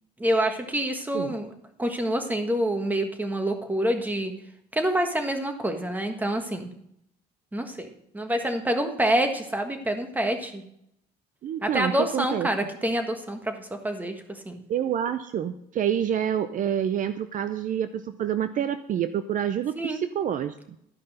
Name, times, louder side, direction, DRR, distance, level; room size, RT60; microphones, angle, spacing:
voice 1, 0.2-1.5 1.8-4.3 4.7-6.7 7.5-7.9 8.1-10.6 11.6-14.6 19.7-20.0, right 1 dB, 10° right, 6 dB, 1.5 m, -27 dB
voice 2, 11.4-12.5 14.7-20.5, right 9 dB, 50° right, 11 dB, 0.5 m, -27 dB
12.5 x 5.5 x 6.5 m, 0.74 s
cardioid pair, 110°, 17 cm